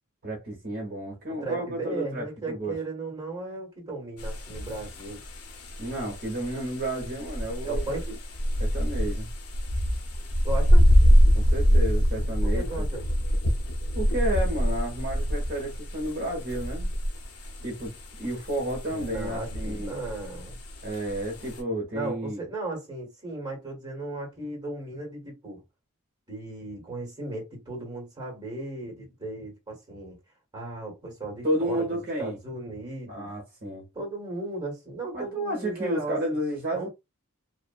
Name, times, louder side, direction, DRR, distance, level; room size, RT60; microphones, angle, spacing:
voice 1, 0.2-2.8 5.8-8.0 8.6-9.3 11.3-12.7 13.9-16.9 17.6-17.9 18.2-20.0 20.8-22.4 31.4-32.4 33.1-33.9 35.1-36.9, right 1 dB, 45° right, 0.9 m, -31 dB
voice 2, 1.3-5.2 7.6-8.2 10.4-10.9 12.4-13.0 18.9-20.6 21.9-25.6 26.3-30.2 30.5-33.3 33.9-36.2 36.7-36.9, right 2 dB, 20° right, 1.3 m, -36 dB
sound 1, 4.2-21.6, equal, 80° left, 0.6 m, -25 dB
2.7 x 2.4 x 2.3 m
head